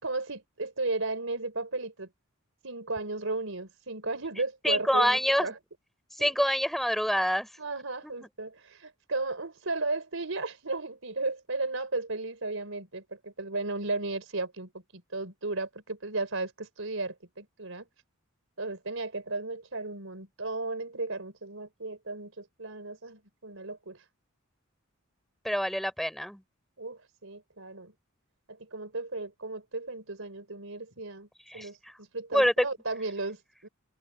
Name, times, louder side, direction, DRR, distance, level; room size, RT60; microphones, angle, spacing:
voice 1, 0.0-2.1 2.6-5.6 6.2-6.3 7.6-17.9 18.6-24.0 26.8-27.9 28.5-31.3 31.5-33.7, right 3 dB, 70° right, 5.0 m, -35 dB
voice 2, 4.6-5.5 6.2-7.5 8.0-8.1 25.4-26.4 31.5-31.9 32.3-32.5, equal, ahead, 5.5 m, -26 dB
open air
head